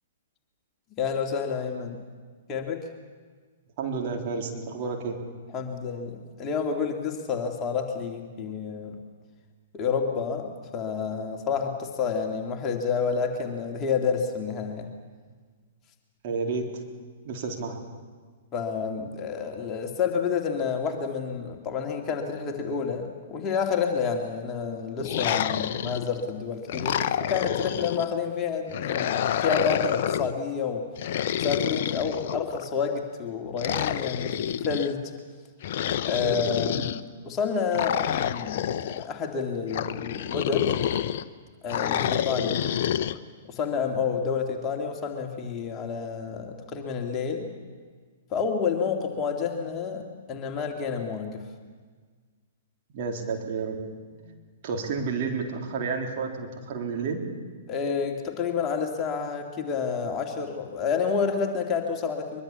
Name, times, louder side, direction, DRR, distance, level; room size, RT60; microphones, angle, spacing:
voice 1, 1.0-2.0 2.5-2.9 5.5-9.0 9.7-14.9 18.5-30.9 31.4-34.4 34.6-35.1 36.0-40.7 41.6-42.7 43.4-47.5 48.3-50.0 50.3-51.4 54.1-54.3 57.7-62.4, left 6 dB, 25° left, 2 dB, 2.8 m, -29 dB
voice 2, 3.8-5.2 16.2-16.6 17.2-17.8 52.9-53.8 54.6-57.2, right 5 dB, 45° right, 1 dB, 3.8 m, -30 dB
sound 1, 25.0-26.2 26.7-28.1 28.7-30.3 31.0-32.7 33.6-34.9 35.6-37.0 37.7-39.0 39.7-41.2 41.7-43.2, left 10 dB, 50° left, 0.9 m, -28 dB
23.0 x 23.0 x 7.2 m, 1.5 s
figure-of-eight pair, 110°, 0 cm